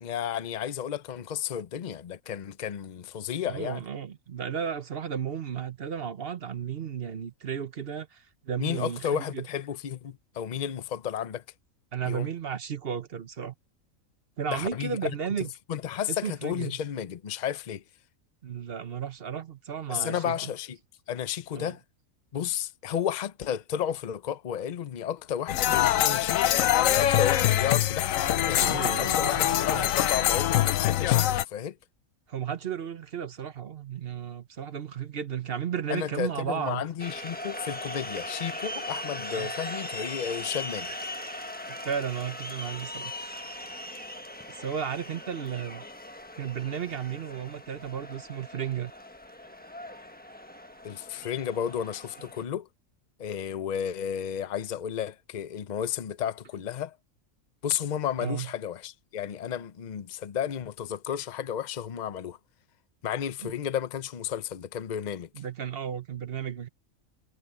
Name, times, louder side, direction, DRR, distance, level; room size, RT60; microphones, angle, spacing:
voice 1, 0.0-3.8 8.6-11.4 12.0-12.3 14.5-15.1 15.7-17.8 19.9-20.8 21.1-21.8 22.3-26.5 27.0-31.8 35.9-40.9 50.8-52.7 53.2-57.0 57.6-62.4 63.0-65.3, left 9 dB, 40° left, 0.7 m, -32 dB
voice 2, 3.4-9.5 11.9-13.5 14.4-15.5 16.1-16.7 18.4-20.5 21.6-21.7 28.6-29.9 32.3-36.8 39.3-39.5 41.7-43.1 44.4-45.8 46.4-48.9 58.2-58.5 63.4-63.5 65.3-66.7, right 8 dB, 50° right, 1.1 m, -34 dB
Hare Krishna Street Musicians, 25.5-31.4, left 12 dB, 75° left, 1.0 m, -24 dB
sound 1, 37.0-52.4, left 1 dB, 5° left, 1.1 m, -39 dB
omnidirectional pair, 1.4 m